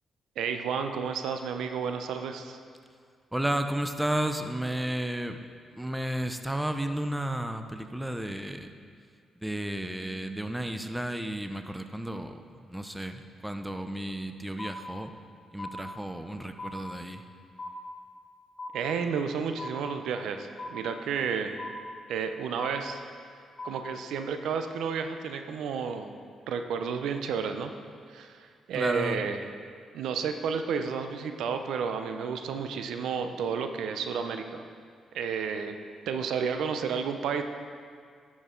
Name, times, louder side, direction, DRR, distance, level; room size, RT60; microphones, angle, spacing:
voice 1, 0.4-2.6 18.7-21.5 22.1-23.0 23.6-26.1 26.5-27.7 28.1-29.4 29.9-34.6 35.1-35.8 36.1-37.4, right 6 dB, 85° right, 7 dB, 0.5 m, -31 dB
voice 2, 3.3-5.4 5.7-8.7 9.4-15.1 15.5-17.2 28.7-29.3, right 1 dB, 5° right, 7 dB, 0.5 m, -33 dB
sound 1, 14.6-15.3 15.6-16.3 16.6-17.3 17.6-18.3 18.6-19.3 19.6-20.3 20.6-21.3 21.6-22.3 22.6-23.3 23.6-24.3, left 2 dB, 35° left, 0.9 m, -41 dB
10.5 x 6.2 x 3.8 m, 2.1 s
cardioid pair, 85°, 0 cm